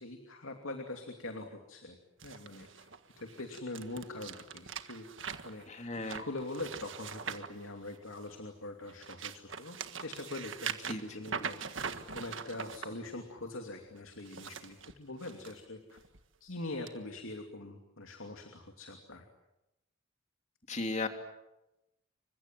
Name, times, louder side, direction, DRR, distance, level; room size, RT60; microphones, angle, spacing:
voice 1, 0.0-2.9 3.2-5.1 5.4-11.6 12.1-16.0 16.4-19.2, left 2 dB, 85° left, 4 dB, 2.8 m, -43 dB
sound 1, 2.2-8.3 8.8-12.9 14.1-15.5 16.0-16.2 16.9-17.0, right 6 dB, 70° right, 1.7 m, -42 dB
voice 2, 5.7-6.2 10.9-11.0 20.7-21.1, left 2 dB, 35° left, 5 dB, 2.9 m, -35 dB
29.0 x 25.0 x 7.6 m, 0.94 s
head